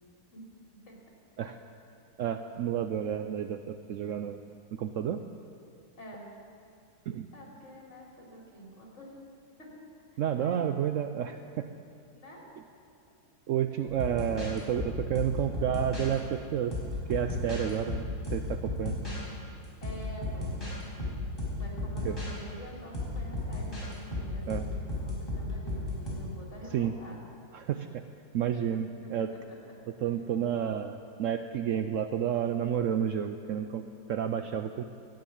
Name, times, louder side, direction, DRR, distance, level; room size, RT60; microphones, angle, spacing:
voice 1, 2.2-4.4 4.7-5.2 7.1-7.3 10.2-11.7 13.5-16.7 17.1-18.1 18.3-19.0 22.0-22.2 24.5-24.6 26.7-26.9 27.5-28.0 28.3-29.3 30.0-34.8, right 9 dB, 70° right, 8 dB, 0.8 m, -30 dB
voice 2, 6.0-6.3 7.3-9.2 9.6-9.7 10.1-10.7 12.1-12.4 19.8-20.6 21.6-24.7 25.0-27.2 28.7-29.7, equal, 45° left, -3 dB, 3.5 m, -47 dB
sound 1, 13.9-16.1 16.7-19.2 19.8-20.7 21.0-22.3 22.9-26.1, left 2 dB, 15° left, 4.8 m, -34 dB
13.0 x 9.1 x 8.5 m, 2.4 s
omnidirectional pair, 1.7 m